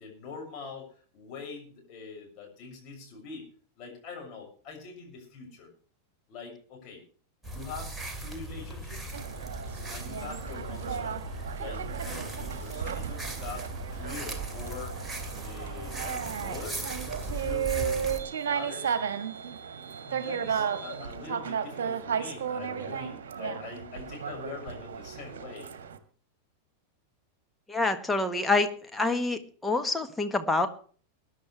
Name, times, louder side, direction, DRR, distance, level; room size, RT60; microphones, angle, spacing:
voice 1, 0.0-3.5 3.8-5.7 6.3-7.0 7.5-9.1 9.9-11.2 11.6-15.0 15.4-16.9 17.4-18.0 18.4-19.0 20.0-25.7, left 5 dB, 35° left, 1 dB, 6.8 m, -43 dB
sound 1, 7.4-18.2, right 2 dB, 10° right, 2.7 m, -38 dB
sound 2, 9.1-26.0, right 7 dB, 60° right, 1.5 m, -34 dB
voice 2, 27.7-30.7, left 3 dB, 10° left, 6 dB, 1.5 m, -27 dB
22.0 x 11.0 x 3.3 m, 0.43 s
figure-of-eight pair, 90°, 0 cm